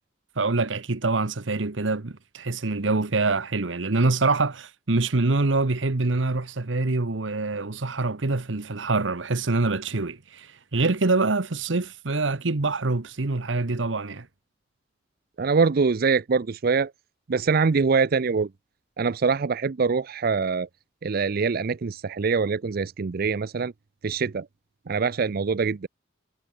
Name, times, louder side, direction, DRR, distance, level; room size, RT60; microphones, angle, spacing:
voice 1, 0.4-14.3, right 3 dB, 90° right, 1.1 m, -25 dB
voice 2, 15.4-16.9 17.3-18.5 19.0-20.7 21.0-23.7 24.0-24.5 24.9-25.9, right 5 dB, 55° right, 0.5 m, -24 dB
head